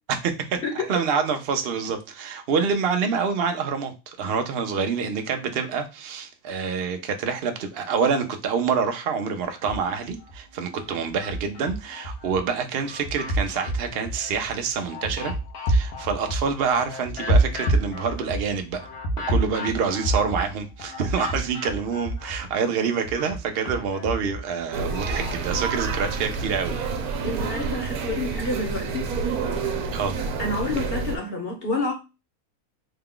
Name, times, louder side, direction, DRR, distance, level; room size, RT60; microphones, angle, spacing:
voice 1, 0.1-0.6 0.9-15.3 15.7-18.9 19.3-26.9 27.2-27.3 29.9-30.2, right 6 dB, 60° right, 0.7 m, -27 dB
sound 1, 9.5-10.4 10.8-12.4 12.8-22.5 22.8-25.4, right 1 dB, 85° left, 1.4 m, -28 dB
sound 2, 24.7-31.2, right 4 dB, 85° right, 1.2 m, -28 dB
voice 2, 27.2-29.1 30.4-31.9, left 2 dB, 45° left, 1.1 m, -28 dB
3.7 x 2.3 x 3.7 m
omnidirectional pair, 1.5 m